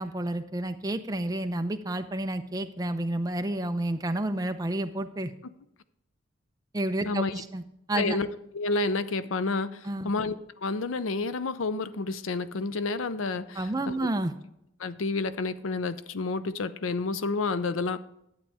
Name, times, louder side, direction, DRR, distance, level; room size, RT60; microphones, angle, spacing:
voice 1, 0.0-5.3 6.7-7.6 7.9-8.2 9.8-10.1 13.6-14.3, right 1 dB, 20° right, 8 dB, 0.6 m, -30 dB
voice 2, 8.0-8.3 8.5-10.4 10.6-13.9 14.8-18.0, left 3 dB, 85° left, 14 dB, 0.6 m, -29 dB
11.0 x 8.5 x 3.4 m, 0.79 s
head